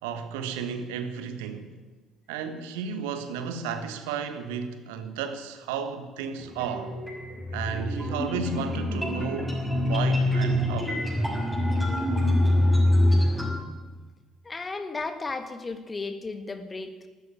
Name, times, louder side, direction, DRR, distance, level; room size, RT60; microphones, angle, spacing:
voice 1, 0.0-1.7 2.3-6.9 7.5-10.9, right 6 dB, 65° right, 1.3 m, -33 dB
sound 1, 6.4-13.5, left 1 dB, ahead, 6.1 m, -25 dB
voice 2, 14.4-17.1, left 3 dB, 25° left, 1.6 m, -34 dB
13.5 x 11.5 x 9.0 m
figure-of-eight pair, 50°, 0 cm